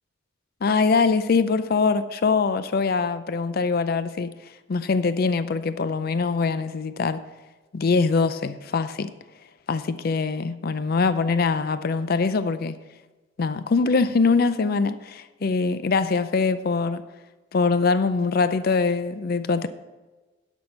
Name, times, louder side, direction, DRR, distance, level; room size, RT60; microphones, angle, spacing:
voice 1, 0.6-4.3 4.7-7.2 7.7-9.1 9.7-12.8 13.4-17.0 17.5-19.7, left 4 dB, 50° left, 12 dB, 0.4 m, -23 dB
11.5 x 6.2 x 5.4 m, 1.2 s
head